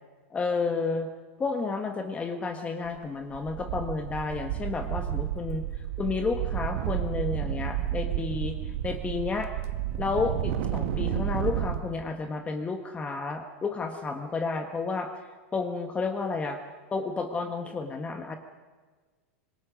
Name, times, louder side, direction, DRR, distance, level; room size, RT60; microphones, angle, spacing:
voice 1, 0.3-1.1 1.4-8.6 8.8-9.5 10.0-15.1 15.5-16.6 16.9-18.4, left 4 dB, 20° left, 5 dB, 1.5 m, -31 dB
sound 1, 2.9-3.0 3.3-11.8, right 11 dB, 70° right, 1.6 m, -31 dB
25.5 x 21.5 x 5.2 m, 1.4 s
supercardioid pair, 125°, 7 cm